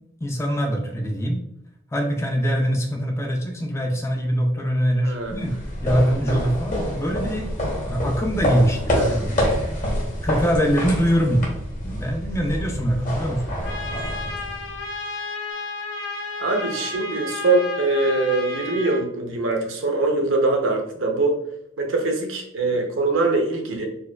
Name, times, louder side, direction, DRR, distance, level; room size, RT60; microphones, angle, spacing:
voice 1, 0.2-1.4 1.9-5.5 5.8-7.5 7.9-9.4 10.2-11.5 11.8-13.4, equal, 15° left, 2 dB, 0.3 m, -23 dB
voice 2, 5.0-5.3 9.0-9.1 16.4-21.4 21.8-23.9, right 2 dB, 75° right, 2 dB, 0.7 m, -22 dB
sound 1, 5.2-14.9, equal, 40° left, 0.9 m, -27 dB
Trumpet, 13.6-19.0, left 3 dB, 65° left, 0.6 m, -32 dB
4.4 x 2.2 x 2.2 m, 0.79 s
head